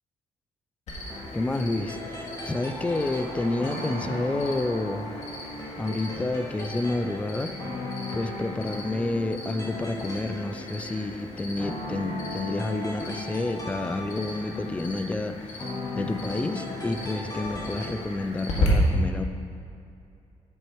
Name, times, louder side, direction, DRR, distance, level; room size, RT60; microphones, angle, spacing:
Cricket, 0.9-18.7, left 3 dB, 65° left, 2.0 m, -39 dB
sound 1, 1.1-17.9, left 1 dB, 30° left, 2.0 m, -38 dB
voice 1, 1.3-5.2 5.8-7.6 8.1-15.7 15.9-19.2, left 2 dB, 10° left, 9 dB, 0.3 m, -29 dB
10.5 x 8.6 x 3.1 m, 2.6 s
cardioid pair, 150°, 12 cm